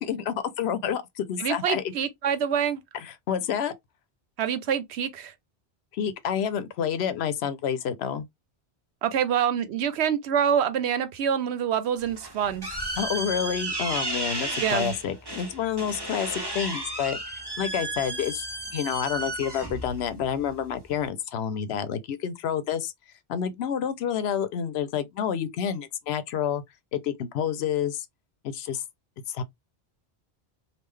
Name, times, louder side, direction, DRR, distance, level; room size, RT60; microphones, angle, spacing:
voice 1, 0.0-1.8 2.9-3.7 5.9-8.3 13.0-17.2 17.6-18.5 18.7-22.9 23.3-26.6 26.9-28.1 28.4-28.8 29.3-29.4, left 8 dB, 75° left, 0.8 m, -29 dB
voice 2, 1.4-2.8 4.4-5.3 9.0-12.7 14.6-14.9, right 8 dB, 85° right, 0.9 m, -26 dB
sound 1, 12.0-21.1, right 2 dB, 25° right, 1.1 m, -34 dB
3.6 x 2.4 x 3.2 m
omnidirectional pair, 1.1 m